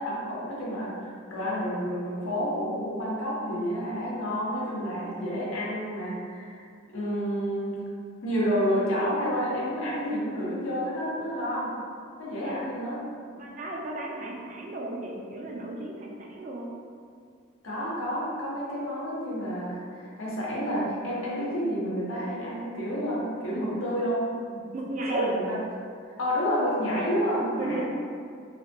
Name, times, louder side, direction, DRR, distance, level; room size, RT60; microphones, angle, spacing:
voice 1, 0.0-6.7 6.9-7.8 8.2-11.7 12.2-13.0 17.6-24.3 25.1-25.6 26.2-27.8, equal, 85° left, -6 dB, 0.6 m, -29 dB
voice 2, 13.4-16.7 24.7-25.3 27.4-27.8, right 2 dB, 40° right, -2 dB, 0.3 m, -34 dB
2.8 x 2.2 x 2.5 m, 2.2 s
head